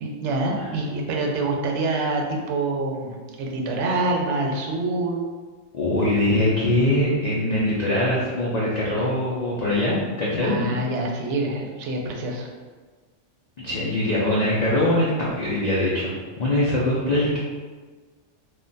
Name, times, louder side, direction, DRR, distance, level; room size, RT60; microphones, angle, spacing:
voice 1, 0.0-5.2 10.4-12.5, right 2 dB, 70° right, 0 dB, 0.8 m, -26 dB
voice 2, 5.7-10.8 13.6-17.4, left 1 dB, 60° left, -7 dB, 0.4 m, -22 dB
2.4 x 2.1 x 3.8 m, 1.4 s
omnidirectional pair, 1.3 m